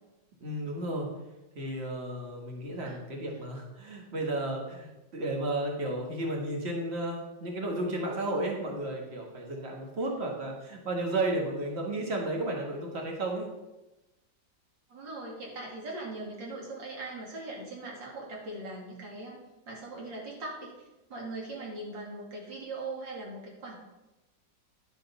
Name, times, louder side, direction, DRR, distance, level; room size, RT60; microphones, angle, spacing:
voice 1, 0.4-1.1 1.6-13.5, right 1 dB, 35° right, 0 dB, 1.9 m, -33 dB
voice 2, 14.9-20.8 21.1-23.8, right 2 dB, 80° right, -3 dB, 3.2 m, -40 dB
10.5 x 5.1 x 5.5 m, 1.0 s
omnidirectional pair, 2.0 m